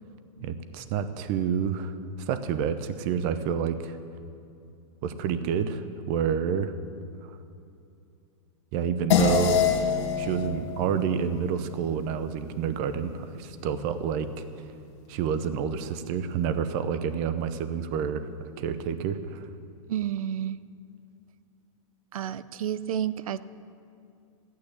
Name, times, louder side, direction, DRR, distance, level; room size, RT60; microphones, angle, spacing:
voice 1, 0.4-4.0 5.0-6.7 7.2-7.4 8.7-9.7 10.1-14.4 15.1-18.3 18.6-19.5, right 7 dB, 35° right, 11 dB, 0.8 m, -29 dB
sound 1, 9.1-13.8, left 7 dB, 55° left, 1.8 m, -28 dB
voice 2, 19.9-20.6 22.1-23.4, right 10 dB, 90° right, 16 dB, 0.6 m, -30 dB
14.5 x 9.5 x 8.5 m, 2.5 s
supercardioid pair, 155°, 17 cm